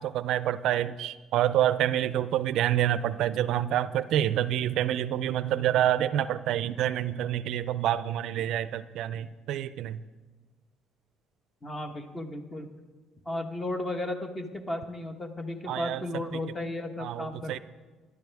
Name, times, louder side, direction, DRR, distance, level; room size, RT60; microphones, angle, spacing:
voice 1, 0.0-10.0 15.7-16.4 17.0-17.6, right 11 dB, 70° right, 15 dB, 0.4 m, -27 dB
voice 2, 11.6-12.7 13.2-17.6, left 1 dB, 20° left, 6 dB, 1.2 m, -34 dB
17.0 x 11.0 x 3.4 m, 1.3 s
cardioid pair, 120°, 0 cm